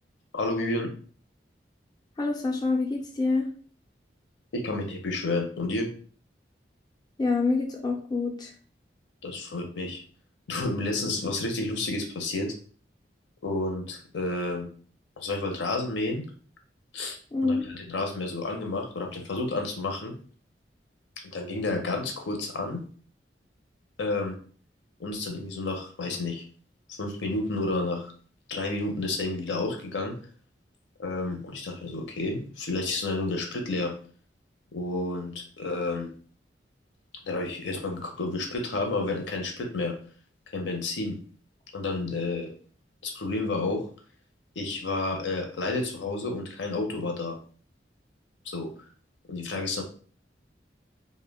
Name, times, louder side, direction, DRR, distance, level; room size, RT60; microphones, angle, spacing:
voice 1, 0.3-0.9 4.5-5.9 9.2-10.0 10.5-12.5 13.4-14.7 15.2-16.2 16.9-20.2 21.2-22.8 24.0-24.4 25.0-26.4 26.9-28.1 28.5-30.2 31.0-34.0 34.7-36.1 37.2-40.0 40.5-41.2 41.7-42.5 43.0-43.9 44.6-47.4 48.4-48.9 49.3-49.8, left 2 dB, 90° left, 3 dB, 0.6 m, -30 dB
voice 2, 2.2-3.5 7.2-8.5 17.3-17.6, left 3 dB, 25° left, -1 dB, 0.4 m, -26 dB
2.1 x 2.1 x 3.3 m, 0.43 s
head